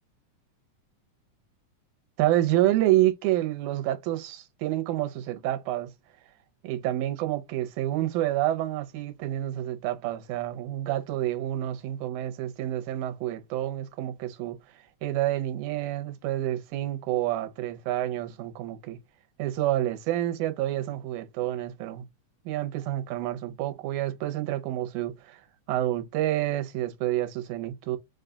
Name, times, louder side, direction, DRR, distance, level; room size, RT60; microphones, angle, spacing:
voice 1, 2.2-5.9 6.6-14.6 15.0-19.0 19.4-22.1 22.5-25.4 25.7-28.0, right 14 dB, 75° right, 2.1 m, -28 dB
5.1 x 2.3 x 3.8 m
omnidirectional pair, 3.7 m